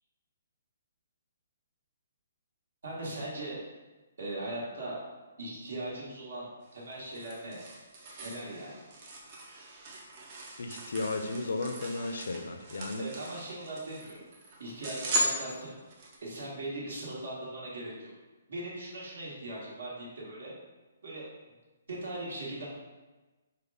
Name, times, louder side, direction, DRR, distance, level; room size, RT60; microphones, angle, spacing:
voice 1, 2.8-3.6 4.2-5.0 5.4-7.6 8.2-8.8 13.0-14.2 14.6-15.8 16.2-18.1 18.5-20.5 21.0-21.3 21.9-22.7, right 1 dB, 60° right, -5 dB, 1.3 m, -39 dB
sound 1, 6.6-16.2, right 1 dB, 20° right, 0.5 m, -38 dB
voice 2, 10.6-13.1, left 3 dB, 70° left, 6 dB, 0.4 m, -34 dB
5.2 x 2.2 x 3.3 m, 1.2 s
hypercardioid pair, 180°, 0 cm